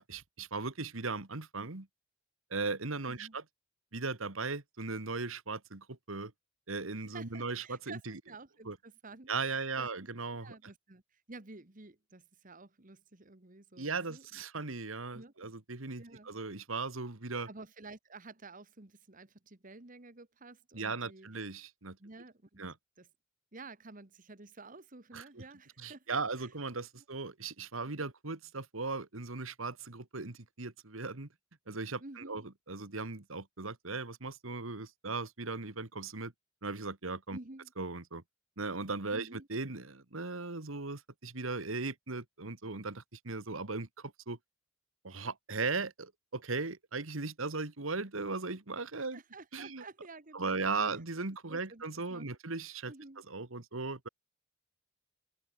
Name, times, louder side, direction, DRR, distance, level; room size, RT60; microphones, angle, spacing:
voice 1, 0.0-1.9 2.5-3.4 3.9-6.3 6.7-8.2 8.7-8.8 9.3-10.6 13.8-17.5 20.7-22.0 22.6-22.7 25.1-25.4 25.8-31.3 31.7-32.4 32.7-36.3 36.6-37.4 37.8-38.2 38.6-44.4 45.0-49.2 49.5-49.8 50.3-52.9 53.3-54.1, right 3 dB, 85° right, 2.0 m, -38 dB
voice 2, 7.1-9.9 10.4-14.4 15.1-15.3 16.0-16.3 17.4-21.3 22.0-22.6 23.0-23.1 23.5-26.5 26.9-27.0 32.0-32.5 37.3-37.7 39.1-39.5 49.1-50.9 51.5-51.8 52.1-52.3 52.9-53.2, right 3 dB, 40° right, 1.6 m, -51 dB
open air
head